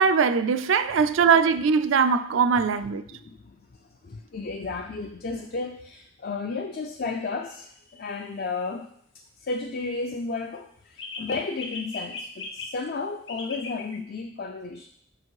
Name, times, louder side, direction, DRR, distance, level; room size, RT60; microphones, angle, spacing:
voice 1, 0.0-3.0, right 6 dB, 75° right, 0.4 m, -21 dB
voice 2, 3.2-3.6 4.0-8.9 9.1-14.9, left 3 dB, 50° left, 0.4 m, -33 dB
sound 1, 7.5-7.6 11.0-12.8 13.3-14.0, left 3 dB, 70° left, 1.0 m, -38 dB
6.0 x 4.9 x 4.7 m
head